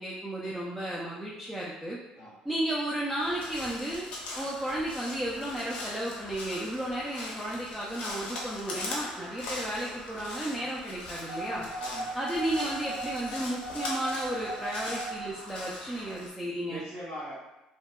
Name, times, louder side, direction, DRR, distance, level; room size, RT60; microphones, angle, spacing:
voice 1, 0.0-2.0 2.4-4.0 4.4-11.6 12.1-16.8, right 1 dB, 5° right, -6 dB, 0.3 m, -33 dB
Crow, 3.2-16.3, left 2 dB, 65° left, 0.6 m, -41 dB
sound 1, 11.3-15.3, right 2 dB, 20° left, 0.9 m, -37 dB
voice 2, 11.4-12.1 16.7-17.3, equal, 20° right, -11 dB, 1.4 m, -40 dB
2.6 x 2.1 x 2.3 m, 1.0 s
cardioid pair, 150°, 2 cm